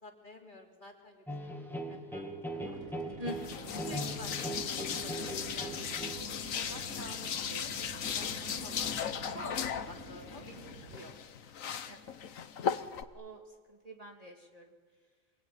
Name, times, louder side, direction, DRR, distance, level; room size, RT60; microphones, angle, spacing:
voice 1, 0.0-1.2 1.9-2.8 3.8-5.8 6.2-11.2, left 1 dB, 35° left, 1 dB, 3.5 m, -50 dB
sound 1, 1.3-6.3, right 1 dB, ahead, 2.5 m, -40 dB
sound 2, 2.4-11.2, right 2 dB, 75° right, 3.5 m, -48 dB
voice 2, 3.2-3.8 11.9-12.1 12.7-12.8 13.1-13.4 13.7-14.7, equal, 25° right, 0 dB, 2.7 m, -45 dB
sound 3, 3.3-13.0, left 7 dB, 75° left, 1.4 m, -37 dB
25.5 x 22.5 x 9.4 m, 1.5 s
omnidirectional pair, 1.4 m